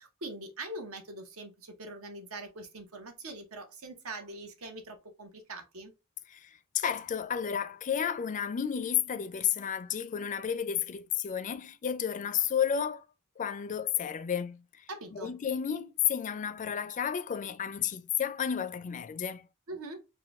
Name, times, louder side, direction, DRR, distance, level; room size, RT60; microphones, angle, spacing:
voice 1, 0.0-5.9 14.9-15.3 19.7-20.0, right 2 dB, 70° right, 1.0 m, -43 dB
voice 2, 6.3-13.0 13.4-14.9 15.1-19.5, left 8 dB, 35° left, 0.4 m, -32 dB
4.5 x 2.2 x 3.5 m
head